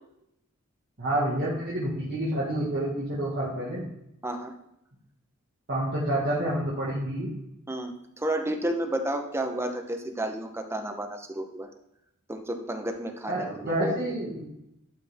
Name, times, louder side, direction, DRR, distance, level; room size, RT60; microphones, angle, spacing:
voice 1, 1.0-3.9 5.7-7.3 13.3-14.5, right 1 dB, 50° right, -7 dB, 1.9 m, -28 dB
voice 2, 4.2-4.5 7.7-11.7 12.3-14.1, right 1 dB, 10° right, 5 dB, 0.9 m, -31 dB
11.5 x 4.4 x 3.6 m, 0.83 s
head